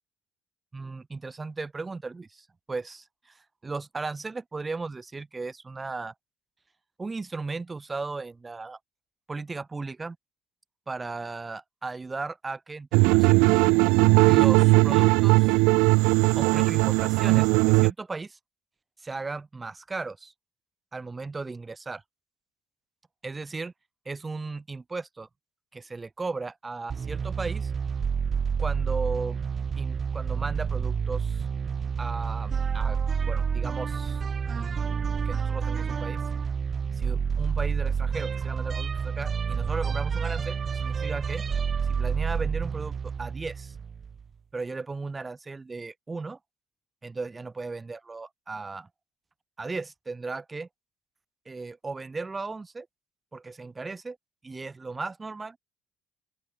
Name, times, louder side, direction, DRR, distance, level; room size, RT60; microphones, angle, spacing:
voice 1, 0.7-6.1 7.0-8.8 9.3-10.2 10.9-13.9 14.2-15.6 16.3-18.4 19.0-20.3 20.9-22.0 23.2-23.7 24.0-25.3 25.7-27.7 28.6-29.4 29.8-31.5 32.0-34.2 34.5-36.2 36.9-41.4 41.8-43.7 44.5-46.4 47.0-48.9 49.6-50.7 51.4-52.9 53.3-54.2 54.4-55.6, right 3 dB, 25° right, 3.3 m, -36 dB
sound 1, 12.9-17.9, right 28 dB, 70° right, 0.6 m, -19 dB
sound 2, 26.9-44.2, right 6 dB, 40° right, 1.9 m, -29 dB
open air
hypercardioid pair, 60°, 0 cm